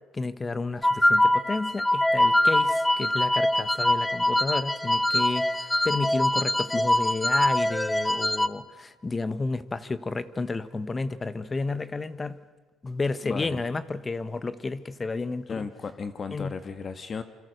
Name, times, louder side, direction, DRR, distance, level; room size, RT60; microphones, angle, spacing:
voice 1, 0.1-12.4 12.8-15.7 16.3-16.5, left 3 dB, 25° left, 14 dB, 1.3 m, -31 dB
sound 1, 0.8-8.5, left 1 dB, 10° left, 1.1 m, -23 dB
voice 2, 13.2-13.6 15.5-17.2, left 5 dB, 40° left, 10 dB, 1.7 m, -35 dB
28.0 x 25.5 x 6.7 m, 1.3 s
cardioid pair, 90°, 0 cm